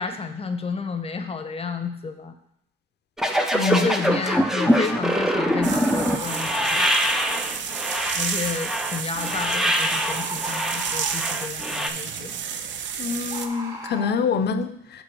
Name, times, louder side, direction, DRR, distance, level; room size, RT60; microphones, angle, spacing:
voice 1, 0.0-2.3 3.7-6.9 8.1-12.4, left 5 dB, 30° left, 8 dB, 0.8 m, -31 dB
sound 1, 3.2-11.9, equal, ahead, 0.6 m, -24 dB
voice 2, 3.5-3.9 13.0-15.0, left 5 dB, 55° left, 9 dB, 0.7 m, -25 dB
Bird, 4.2-4.3 5.9-6.8 9.1-9.3 9.9-11.3 13.3-14.1, right 1 dB, 20° right, 1.4 m, -36 dB
sound 2, 5.6-13.5, right 7 dB, 65° right, 0.6 m, -31 dB
5.2 x 4.7 x 6.0 m, 0.72 s
cardioid pair, 90°, 20 cm